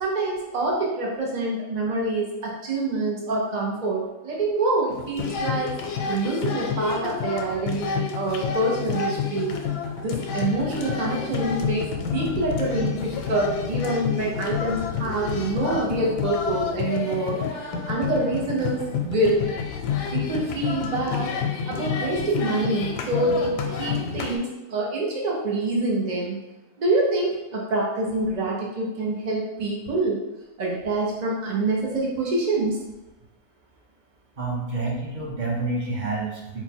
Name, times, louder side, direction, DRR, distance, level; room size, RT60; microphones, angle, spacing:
voice 1, 0.0-5.7 6.1-9.5 10.0-17.4 17.9-19.5 20.1-21.3 21.7-26.4 26.8-30.2 30.6-32.8, right 2 dB, 90° right, -3 dB, 0.3 m, -26 dB
sound 1, 4.9-24.4, left 6 dB, 80° left, 1.2 m, -29 dB
voice 2, 34.4-36.6, right 3 dB, 40° right, -3 dB, 0.7 m, -28 dB
4.0 x 2.2 x 4.3 m, 1.0 s
omnidirectional pair, 1.8 m